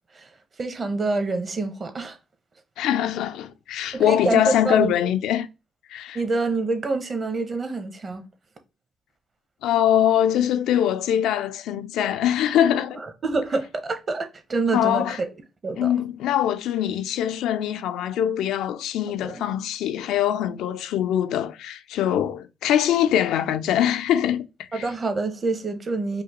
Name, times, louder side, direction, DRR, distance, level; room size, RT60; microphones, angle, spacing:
voice 1, 0.6-2.2 3.9-4.9 6.1-8.2 12.9-15.2 15.6-15.9 19.2-19.4 24.7-26.2, right 3 dB, 35° right, 0.9 m, -27 dB
voice 2, 2.8-5.5 5.9-6.2 9.6-13.0 14.7-15.2 15.8-24.5 24.7-24.9, left 10 dB, 85° left, 0.3 m, -23 dB
4.9 x 2.1 x 2.9 m
cardioid pair, 90°, 0 cm